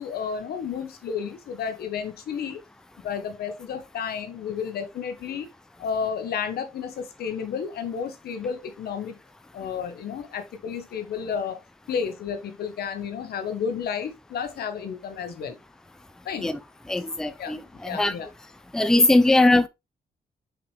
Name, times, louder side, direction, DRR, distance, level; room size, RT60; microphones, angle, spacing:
voice 1, 0.0-2.6 3.0-5.5 5.8-9.2 9.5-11.6 11.9-15.6 16.2-16.5 17.4-17.5 17.8-18.3, left 7 dB, 90° left, 1.4 m, -31 dB
voice 2, 16.9-18.2 18.7-19.7, left 2 dB, 5° left, 0.5 m, -20 dB
6.0 x 5.0 x 3.4 m
wide cardioid pair, 145°, 16 cm